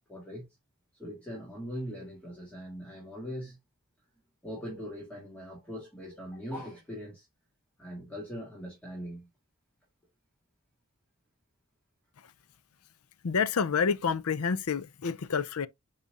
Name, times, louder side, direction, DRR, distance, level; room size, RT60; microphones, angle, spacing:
voice 1, 0.1-0.5 1.0-3.6 4.4-7.3 7.8-9.3, equal, 5° left, 2.9 m, -41 dB
voice 2, 13.2-15.7, left 6 dB, 75° left, 0.6 m, -28 dB
8.3 x 5.0 x 2.6 m
head